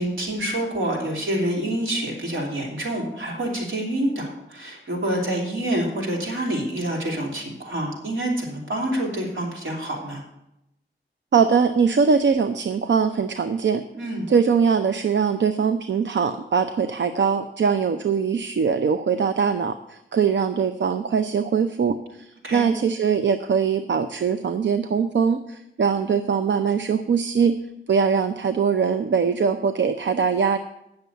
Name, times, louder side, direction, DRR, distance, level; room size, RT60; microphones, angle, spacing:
voice 1, 0.0-10.2 14.0-14.3 22.4-22.7, right 1 dB, 80° right, -2 dB, 3.2 m, -27 dB
voice 2, 11.3-13.8 14.3-27.6 27.9-30.6, right 6 dB, 65° right, 9 dB, 0.5 m, -22 dB
9.2 x 6.7 x 8.1 m, 0.86 s
wide cardioid pair, 130°, 20 cm